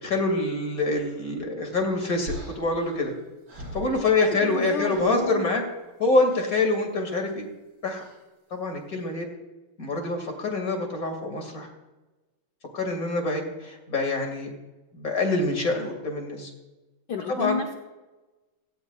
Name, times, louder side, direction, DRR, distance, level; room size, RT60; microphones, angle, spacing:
voice 1, 0.0-3.1 3.7-5.6 6.0-7.5 7.8-8.0 8.5-9.3 9.8-11.7 12.7-14.5 14.9-16.5 17.3-17.6, left 2 dB, 40° left, 3 dB, 2.6 m, -26 dB
sound 1, 2.3-4.5 4.8-5.2 6.3-6.6 7.9-8.2, right 1 dB, 85° right, 5.9 m, -41 dB
voice 2, 4.2-5.5 17.1-17.7, left 5 dB, 60° left, 3 dB, 1.3 m, -31 dB
17.5 x 17.0 x 2.4 m, 1.1 s
omnidirectional pair, 2.4 m